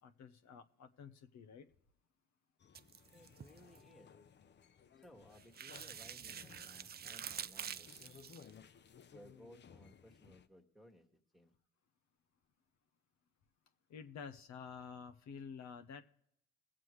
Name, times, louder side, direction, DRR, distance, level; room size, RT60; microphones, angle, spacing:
voice 1, 0.0-1.7 13.9-16.0, left 6 dB, 65° left, 0.9 m, -50 dB
sound 1, 2.6-10.5, left 7 dB, 35° left, 0.6 m, -60 dB
sound 2, 2.7-3.8 5.3-8.5, right 8 dB, 35° right, 0.4 m, -47 dB
voice 2, 3.1-4.3 5.0-8.4 9.1-11.5, equal, ahead, 1.7 m, -61 dB
21.5 x 7.6 x 3.2 m
cardioid pair, 90°, 30 cm